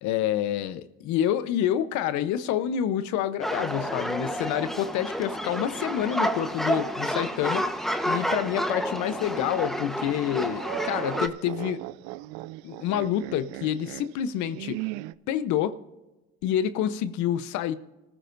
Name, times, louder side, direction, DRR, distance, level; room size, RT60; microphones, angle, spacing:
voice 1, 0.0-7.6 8.1-11.8 12.6-14.8 15.3-15.8 16.4-17.8, left 10 dB, 70° left, 0.9 m, -28 dB
sound 1, 3.4-11.3, equal, ahead, 1.1 m, -30 dB
sound 2, 5.2-6.9 7.3-7.4 8.4-15.1, right 19 dB, 80° right, 0.5 m, -39 dB
25.5 x 14.5 x 2.6 m
supercardioid pair, 80°, 30 cm